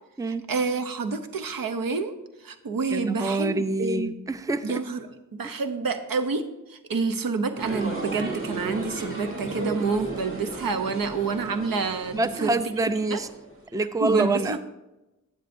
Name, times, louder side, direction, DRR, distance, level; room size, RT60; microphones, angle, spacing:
voice 1, 0.5-2.1 2.4-4.1 4.6-12.6 13.1-13.2 14.0-14.6, right 4 dB, 80° right, 8 dB, 0.8 m, -28 dB
voice 2, 2.9-4.8 5.4-5.6 12.1-13.3 13.7-14.6, right 2 dB, 10° right, 12 dB, 0.5 m, -26 dB
sound 1, 7.6-13.6, right 2 dB, 40° right, 2.6 m, -35 dB
12.0 x 8.2 x 2.6 m, 0.99 s
cardioid pair, 45°, 34 cm